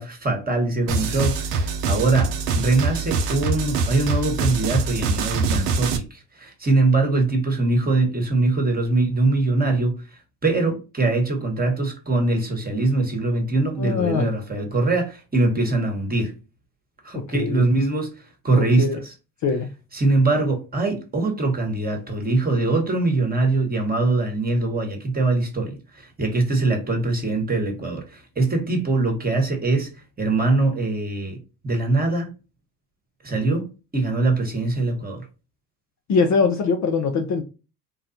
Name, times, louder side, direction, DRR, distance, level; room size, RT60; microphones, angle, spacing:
voice 1, 0.0-9.9 10.4-16.3 17.0-18.2 18.4-18.9 19.9-29.9 30.2-31.4 31.6-32.3 33.2-35.2, right 2 dB, 20° right, 1.2 m, -22 dB
sound 1, 0.9-6.0, right 4 dB, 75° right, 0.7 m, -24 dB
voice 2, 13.8-14.3 17.1-17.6 18.5-19.0 19.4-19.7 36.1-37.4, left 5 dB, 35° left, 0.6 m, -22 dB
3.5 x 2.3 x 2.7 m
hypercardioid pair, 65°, 47 cm